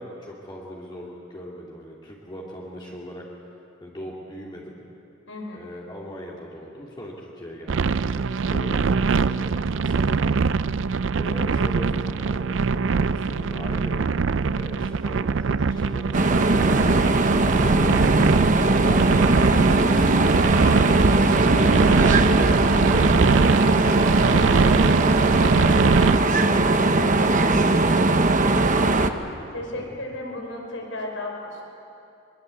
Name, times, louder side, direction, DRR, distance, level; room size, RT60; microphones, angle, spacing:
voice 1, 0.0-3.5 3.8-4.8 5.5-10.6 11.1-14.1 14.4-21.4 21.8-24.9 25.5-28.0 29.8-30.0, equal, 25° left, -5 dB, 2.9 m, -39 dB
voice 2, 5.3-5.6 17.4-17.8 28.5-28.9 29.5-31.6, left 1 dB, 85° left, 1 dB, 5.4 m, -34 dB
sound 1, 7.7-26.2, right 4 dB, 70° right, 0.5 m, -23 dB
sound 2, 16.1-29.1, right 2 dB, 40° right, 1.1 m, -20 dB
23.0 x 22.5 x 8.5 m, 2.7 s
head